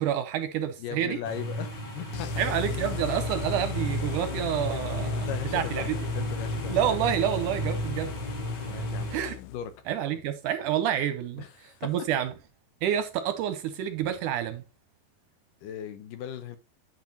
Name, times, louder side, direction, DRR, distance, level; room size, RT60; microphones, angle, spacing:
voice 1, 0.0-1.2 2.4-5.3 5.5-6.0 6.7-8.1 9.1-9.4 9.9-12.3 12.8-14.6, right 10 dB, 80° right, 2.0 m, -28 dB
voice 2, 0.8-3.0 4.7-4.8 5.1-6.9 8.7-9.7 11.4-12.0 15.6-16.6, left 9 dB, 75° left, 2.4 m, -39 dB
sound 1, 1.2-9.1, right 1 dB, 30° left, 2.6 m, -33 dB
Cutting synth, 2.1-9.8, left 13 dB, 90° left, 1.8 m, -37 dB
10.5 x 6.0 x 2.8 m
omnidirectional pair, 4.1 m